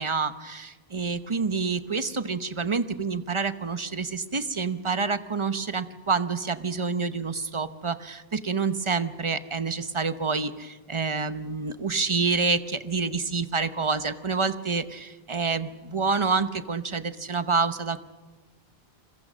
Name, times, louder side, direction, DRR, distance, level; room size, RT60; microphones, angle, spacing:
voice 1, 0.0-18.0, right 4 dB, 30° right, 11 dB, 0.9 m, -28 dB
28.5 x 22.0 x 6.3 m, 1.3 s
omnidirectional pair, 1.0 m